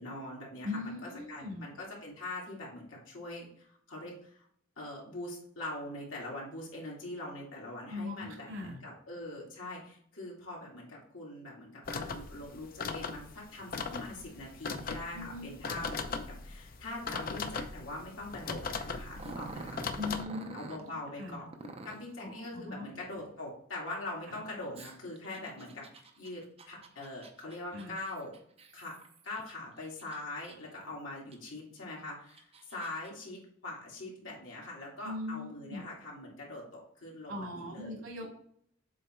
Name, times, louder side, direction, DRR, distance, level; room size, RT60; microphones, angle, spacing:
voice 1, 0.0-4.5 4.8-19.8 20.5-28.3 28.7-29.0 29.2-38.1, left 2 dB, 80° left, -3 dB, 2.5 m, -43 dB
voice 2, 0.6-1.6 7.9-8.8 15.1-15.5 20.0-20.6 21.2-21.3 22.2-22.8 27.7-27.9 35.0-35.8 37.3-38.3, left 2 dB, 75° right, -1 dB, 2.6 m, -40 dB
sound 1, 11.8-20.2, left 4 dB, 45° left, 0.6 m, -39 dB
Growling, 19.2-20.8 21.5-22.1 24.7-29.5 30.0-30.8 31.3-31.4 32.1-33.1, right 3 dB, 30° right, 0.7 m, -48 dB
7.6 x 3.4 x 4.5 m, 0.62 s
head